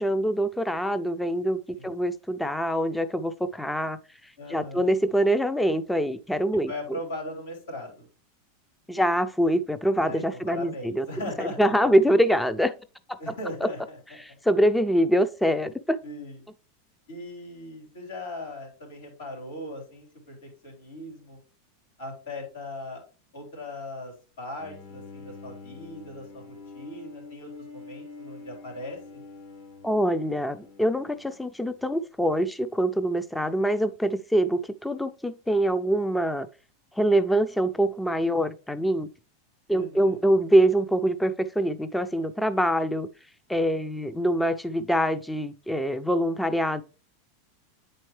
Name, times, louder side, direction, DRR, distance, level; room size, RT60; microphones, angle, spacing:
voice 1, 0.0-7.0 8.9-11.1 11.4-12.7 13.3-13.4 13.6-13.7 14.2-16.0 29.8-36.5 36.9-39.1 39.7-43.1 43.5-46.8, right 1 dB, 5° left, 0.3 m, -24 dB
voice 2, 4.4-4.9 6.7-8.1 10.0-11.9 13.2-14.0 16.0-16.4 17.1-21.4 22.0-23.0 23.3-29.2 39.7-40.2, left 2 dB, 90° left, 3.7 m, -39 dB
Bowed string instrument, 24.6-31.8, left 4 dB, 55° left, 1.1 m, -46 dB
8.8 x 4.3 x 3.2 m
supercardioid pair, 130°, 0 cm